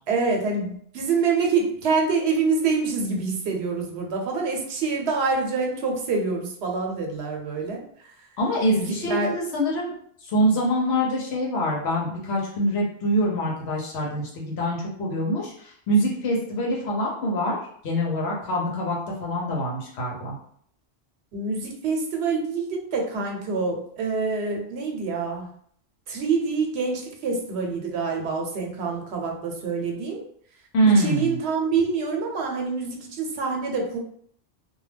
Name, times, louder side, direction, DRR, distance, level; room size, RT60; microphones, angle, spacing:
voice 1, 0.1-8.1 8.7-9.3 21.3-25.5 26.1-30.2 30.9-34.0, right 4 dB, 90° right, 1 dB, 0.9 m, -26 dB
voice 2, 8.4-9.9 10.2-17.6 17.8-20.4 30.7-31.3, right 1 dB, 85° left, -3 dB, 0.9 m, -24 dB
2.2 x 2.2 x 3.2 m, 0.63 s
omnidirectional pair, 1.1 m